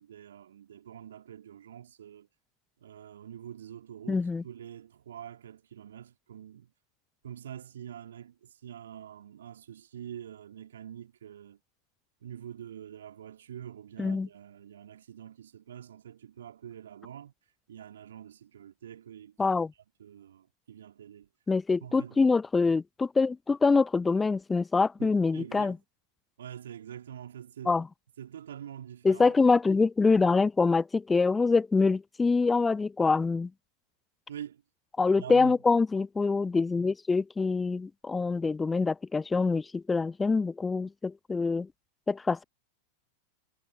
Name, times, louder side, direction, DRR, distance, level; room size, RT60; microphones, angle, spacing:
voice 1, 0.0-2.3 2.8-6.7 7.2-11.6 12.2-17.3 17.7-19.5 20.0-21.3 21.8-22.3 25.0-25.8 26.4-27.8 28.2-29.4 34.3-34.6 35.2-35.6, right 10 dB, 65° right, 3.7 m, -45 dB
voice 2, 4.1-4.4 14.0-14.3 19.4-19.7 21.5-25.8 27.7-27.9 29.0-33.5 35.0-41.7 42.1-42.4, left 4 dB, 10° left, 0.6 m, -25 dB
figure-of-eight pair, 90°, 0 cm